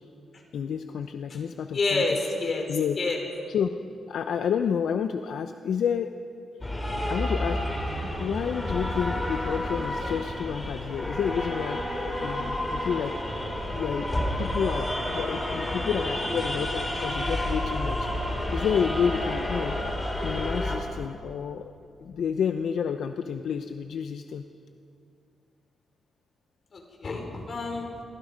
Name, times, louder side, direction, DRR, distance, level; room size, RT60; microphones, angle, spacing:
voice 1, 0.5-2.0 2.7-3.0 3.5-3.7 4.1-6.1 7.1-7.6 8.2-13.1 13.7-18.1 18.5-19.8 20.2-21.7 22.0-24.4, left 7 dB, 75° left, 8 dB, 0.8 m, -30 dB
voice 2, 1.7-2.6 3.0-3.2 15.5-15.6 26.7-27.9, left 3 dB, 45° left, 1 dB, 5.1 m, -28 dB
sound 1, 6.6-20.8, left 1 dB, 15° left, 4.4 m, -30 dB
29.5 x 23.5 x 5.2 m, 2.4 s
cardioid pair, 130°, 0 cm